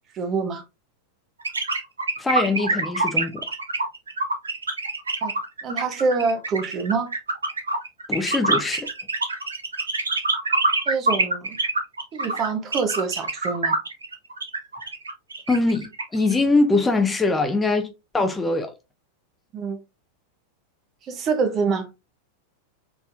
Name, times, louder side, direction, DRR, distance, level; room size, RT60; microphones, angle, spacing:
voice 1, 0.1-0.6 5.2-5.3 5.6-7.1 10.9-11.6 12.1-13.8 19.5-19.8 21.0-21.9, right 4 dB, 30° right, 1.0 m, -25 dB
sound 1, 1.4-16.4, right 2 dB, 75° right, 0.9 m, -25 dB
voice 2, 2.2-3.5 8.1-8.9 15.5-18.7, left 3 dB, 10° left, 0.6 m, -22 dB
4.1 x 3.5 x 2.6 m
figure-of-eight pair, 90°, 0 cm